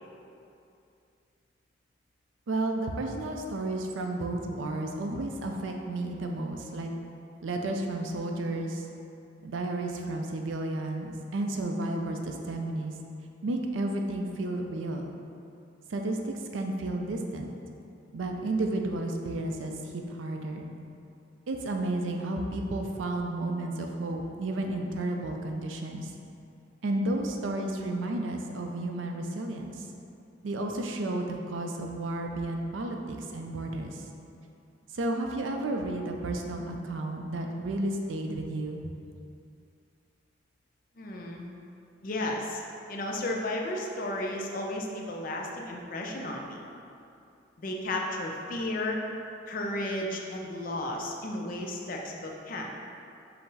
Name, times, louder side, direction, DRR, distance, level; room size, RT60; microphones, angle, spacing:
voice 1, 2.5-6.9 7.4-8.9 9.4-12.9 13.4-15.1 15.9-17.5 18.1-20.7 21.5-26.1 26.8-29.9 30.4-34.0 34.9-38.8, right 2 dB, 90° right, 2 dB, 0.4 m, -32 dB
voice 2, 41.0-41.4 42.0-42.6 42.9-46.6 47.6-49.0 49.5-52.7, left 1 dB, 45° left, 0 dB, 0.5 m, -33 dB
5.6 x 2.0 x 3.9 m, 2.6 s
head